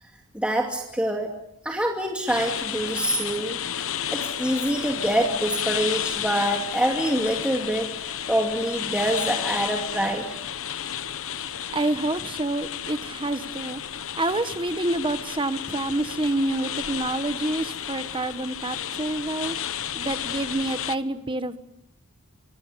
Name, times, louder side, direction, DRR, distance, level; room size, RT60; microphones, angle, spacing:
voice 1, 0.3-1.3 1.6-3.8 4.1-7.9 8.3-10.4, right 1 dB, 5° right, 0 dB, 2.6 m, -25 dB
sound 1, 2.3-21.0, left 9 dB, 65° left, 1.0 m, -32 dB
voice 2, 11.7-13.8 14.2-19.6 19.9-21.6, right 2 dB, 25° right, 10 dB, 1.4 m, -27 dB
27.5 x 25.0 x 7.0 m, 0.76 s
head